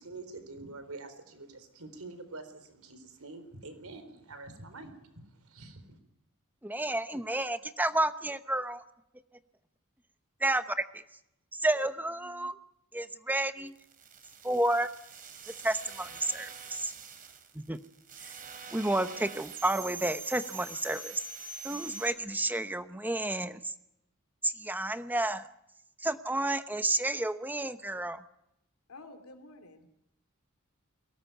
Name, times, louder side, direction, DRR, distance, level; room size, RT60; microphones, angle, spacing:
voice 1, 0.0-4.9 5.4-6.0, right 3 dB, 80° right, 10 dB, 4.1 m, -46 dB
voice 2, 6.6-8.8 10.4-11.0 11.5-12.5 12.9-13.7 14.4-14.9 15.6-16.9 17.5-17.8 18.7-21.2 21.6-23.7 24.4-25.5 26.0-28.2, right 1 dB, 10° right, 10 dB, 0.9 m, -31 dB
sound 1, 13.7-22.1, right 5 dB, 40° right, 3.2 m, -44 dB
voice 3, 28.9-29.9, left 2 dB, 85° left, 7 dB, 2.7 m, -50 dB
23.0 x 18.5 x 9.2 m, 0.81 s
head